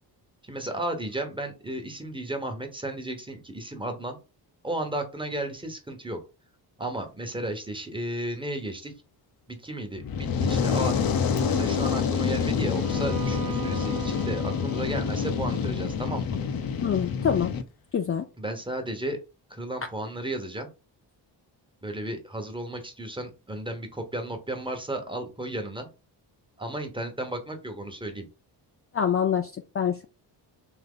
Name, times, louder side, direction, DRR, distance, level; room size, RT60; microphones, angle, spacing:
voice 1, 0.4-4.2 4.6-6.2 6.8-8.9 9.5-10.9 11.5-16.4 18.4-19.2 19.5-20.7 21.8-25.9 26.6-28.3, right 1 dB, 10° right, 5 dB, 1.1 m, -34 dB
Fire, 10.0-17.6, left 6 dB, 50° left, 0.8 m, -27 dB
Bowed string instrument, 12.7-16.7, right 8 dB, 55° right, 0.7 m, -40 dB
voice 2, 16.8-17.5 17.9-18.3 28.9-30.0, left 8 dB, 30° left, 6 dB, 0.5 m, -25 dB
3.7 x 2.8 x 3.8 m, 0.30 s
cardioid pair, 80°, 44 cm